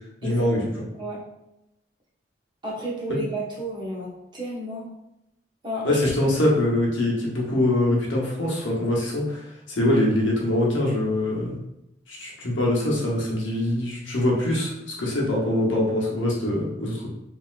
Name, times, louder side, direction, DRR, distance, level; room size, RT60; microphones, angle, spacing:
voice 1, 0.2-0.6 5.8-11.6 12.1-17.1, left 1 dB, 85° left, -3 dB, 0.9 m, -23 dB
voice 2, 2.6-4.9 5.6-6.0 6.4-6.5, right 1 dB, 25° right, -5 dB, 0.8 m, -32 dB
3.1 x 2.7 x 2.4 m, 0.85 s
head